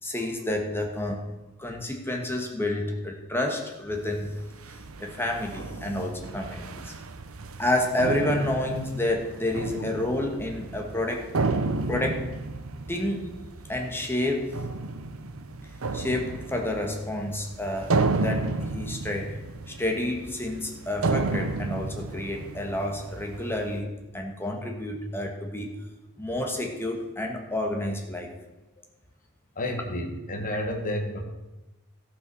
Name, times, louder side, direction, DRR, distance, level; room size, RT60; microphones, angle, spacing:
voice 1, 0.0-1.2 1.6-4.3 5.0-6.9 7.6-11.2 11.9-12.3 12.9-13.3 13.7-14.5 15.9-19.4 19.7-25.7 26.2-28.3, left 1 dB, 10° left, 1 dB, 1.6 m, -29 dB
sound 1, 3.9-23.8, right 3 dB, 70° right, 0.8 m, -32 dB
voice 2, 29.5-31.2, left 1 dB, 40° left, 3 dB, 1.8 m, -31 dB
14.0 x 5.7 x 6.3 m, 1.0 s
head